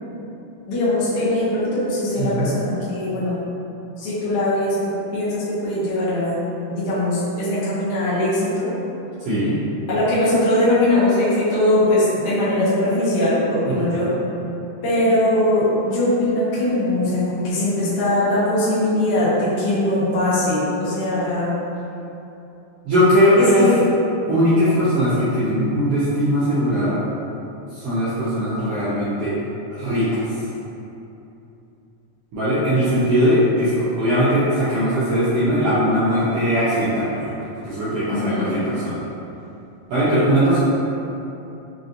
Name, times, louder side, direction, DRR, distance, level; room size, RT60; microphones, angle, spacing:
voice 1, 0.7-3.4 4.0-8.7 9.9-14.1 14.8-21.6 23.6-23.8 38.1-38.6, left 1 dB, 70° left, -10 dB, 0.9 m, -21 dB
voice 2, 2.2-2.5 9.2-9.6 13.6-13.7 14.0-14.1 22.8-23.7 24.3-27.0 27.7-29.4 29.8-30.2 32.3-39.0 39.9-40.6, equal, 70° right, -12 dB, 1.5 m, -19 dB
5.0 x 2.6 x 2.6 m, 2.9 s
omnidirectional pair, 3.4 m